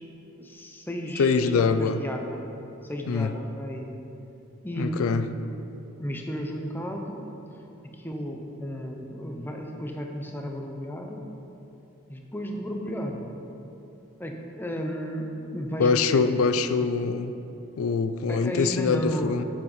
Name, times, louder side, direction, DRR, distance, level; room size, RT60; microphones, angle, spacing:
voice 1, 0.4-2.4 2.8-4.0 4.6-5.2 6.0-7.3 7.8-11.3 12.1-13.4 14.2-16.7 18.3-19.4, equal, 10° left, 2 dB, 0.7 m, -33 dB
voice 2, 1.2-2.0 3.1-3.3 4.8-5.3 15.8-17.3 17.8-19.4, left 5 dB, 80° left, 12 dB, 0.4 m, -24 dB
8.1 x 7.3 x 5.5 m, 2.9 s
head